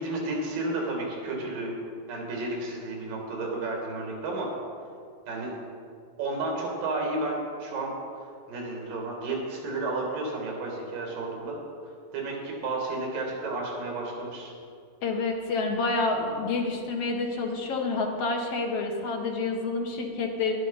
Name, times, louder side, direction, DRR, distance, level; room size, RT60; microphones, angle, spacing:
voice 1, 0.0-1.8 2.1-4.5 5.3-5.5 6.2-7.9 8.5-11.6 12.1-14.5, right 2 dB, 75° right, -1 dB, 4.0 m, -32 dB
voice 2, 15.0-20.5, left 3 dB, 65° left, 1 dB, 1.7 m, -28 dB
11.5 x 11.5 x 5.6 m, 2.3 s
omnidirectional pair, 4.0 m